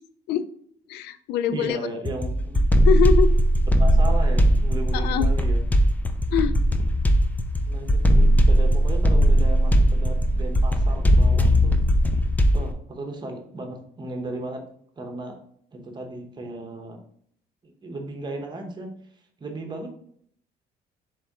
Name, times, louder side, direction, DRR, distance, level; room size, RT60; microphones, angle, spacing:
voice 1, 0.9-1.9 2.8-3.3 4.9-5.3 6.3-6.5, left 9 dB, 75° left, 13 dB, 0.4 m, -23 dB
voice 2, 1.5-2.7 3.6-5.6 7.6-11.8 12.5-14.6 15.0-15.4 15.7-17.0 17.6-18.9 19.4-19.9, right 2 dB, 25° right, 3 dB, 0.9 m, -35 dB
sound 1, 2.1-12.7, equal, 10° left, 0.4 m, -19 dB
4.1 x 3.1 x 3.6 m, 0.64 s
cardioid pair, 110°, 17 cm